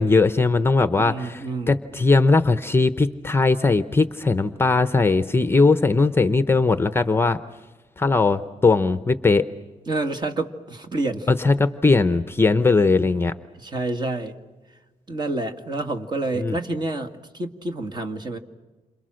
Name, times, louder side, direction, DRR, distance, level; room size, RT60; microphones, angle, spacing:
voice 1, 0.0-1.4 1.7-7.4 8.0-9.5 11.3-13.3 16.4-16.5, left 3 dB, 15° left, 11 dB, 0.8 m, -19 dB
voice 2, 1.0-1.8 9.9-11.3 13.5-14.4 15.1-18.4, right 2 dB, 35° right, 5 dB, 2.0 m, -28 dB
29.0 x 27.0 x 6.4 m, 1.2 s
cardioid pair, 130°, 13 cm